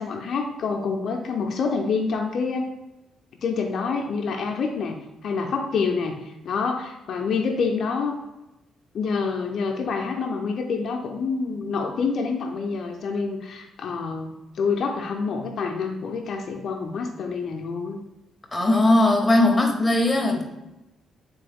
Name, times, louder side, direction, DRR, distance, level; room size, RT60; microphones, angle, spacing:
voice 1, 0.0-2.7 3.4-6.2 6.4-8.2 8.9-18.0 20.3-20.4, left 5 dB, 60° left, 2 dB, 0.5 m, -27 dB
voice 2, 18.5-20.4, left 2 dB, 15° left, 2 dB, 0.7 m, -19 dB
3.8 x 3.0 x 3.4 m, 0.98 s
cardioid pair, 90°, 0 cm